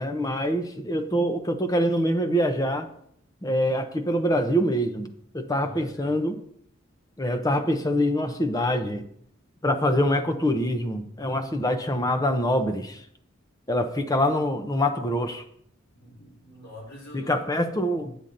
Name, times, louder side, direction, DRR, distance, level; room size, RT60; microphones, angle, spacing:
voice 1, 0.0-2.9 3.4-6.4 7.2-9.0 9.6-13.0 13.7-15.4 17.1-18.2, equal, 20° left, 8 dB, 0.7 m, -25 dB
voice 2, 5.5-6.2 15.9-17.7, left 1 dB, 80° left, -5 dB, 4.1 m, -45 dB
8.7 x 8.2 x 3.9 m, 0.69 s
head